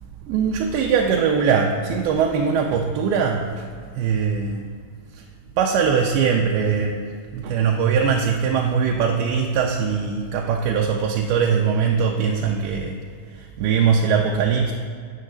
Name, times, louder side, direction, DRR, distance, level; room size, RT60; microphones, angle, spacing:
voice 1, 0.3-3.7 3.9-4.7 5.2-5.3 5.6-7.0 7.3-13.0 13.3-14.7, right 6 dB, 80° right, 1 dB, 2.3 m, -21 dB
9.6 x 4.6 x 6.4 m, 2.1 s
omnidirectional pair, 4.8 m